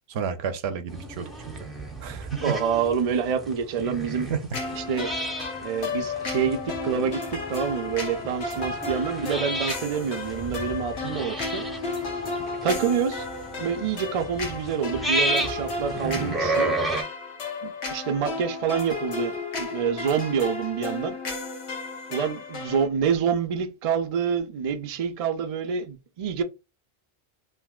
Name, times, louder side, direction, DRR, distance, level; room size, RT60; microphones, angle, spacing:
voice 1, 0.1-1.7 2.0-2.6 4.3-4.6, right 7 dB, 75° right, 0.8 m, -31 dB
sound 1, 0.9-17.0, right 1 dB, ahead, 0.7 m, -32 dB
voice 2, 2.4-4.3 4.7-5.1 5.6-11.6 12.6-13.3 13.6-16.7 17.6-21.2 22.1-26.4, right 7 dB, 55° right, 0.4 m, -27 dB
sound 2, 4.5-22.9, left 3 dB, 85° left, 1.2 m, -33 dB
3.5 x 2.7 x 2.3 m
omnidirectional pair, 1.1 m